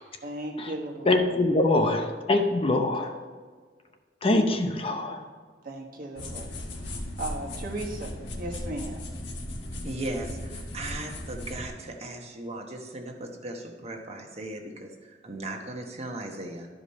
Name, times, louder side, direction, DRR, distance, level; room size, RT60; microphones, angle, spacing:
voice 1, 0.2-1.1 1.7-1.9 2.7-3.1 4.9-5.2 5.6-9.1, right 1 dB, 55° right, 0 dB, 1.3 m, -37 dB
voice 2, 1.1-3.1 4.2-5.2, left 2 dB, 35° left, 5 dB, 0.7 m, -24 dB
sound 1, 6.2-11.7, left 1 dB, 80° left, 1.4 m, -37 dB
voice 3, 9.8-16.7, right 1 dB, 35° right, 2 dB, 1.1 m, -37 dB
12.5 x 5.1 x 4.2 m, 1.5 s
head